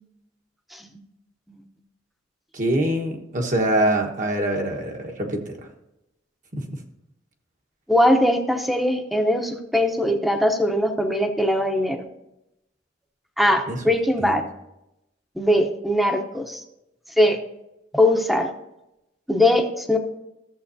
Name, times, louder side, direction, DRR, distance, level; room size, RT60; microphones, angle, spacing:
voice 1, 2.5-5.7 6.5-6.8 13.7-13.8 14.2-14.3, right 1 dB, 45° right, 2 dB, 1.2 m, -24 dB
voice 2, 7.9-12.0 13.4-14.4 15.4-16.6 17.2-17.4 17.9-18.5 19.3-20.0, left 1 dB, ahead, 5 dB, 0.8 m, -20 dB
14.0 x 7.2 x 2.7 m, 0.89 s
head